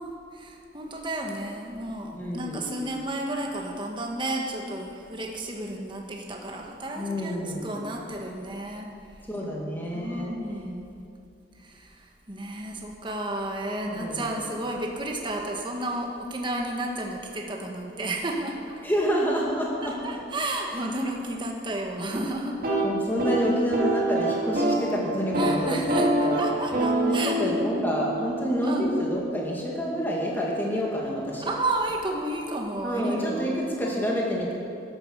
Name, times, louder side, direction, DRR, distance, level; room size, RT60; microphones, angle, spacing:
voice 1, 0.0-8.9 9.9-10.9 11.6-18.8 19.8-22.6 25.4-27.7 28.6-28.9 31.5-33.7, right 1 dB, 25° right, 1 dB, 1.3 m, -32 dB
voice 2, 2.1-2.8 7.0-7.7 9.3-10.3 13.9-14.3 18.8-20.2 20.7-20.9 22.8-26.6 27.0-31.5 32.8-34.5, equal, 10° left, -3 dB, 2.3 m, -28 dB
sound 1, 22.5-24.9 25.2-25.6 25.9-29.7, right 1 dB, 50° right, 2.7 m, -26 dB
12.5 x 10.0 x 6.6 m, 2.5 s
head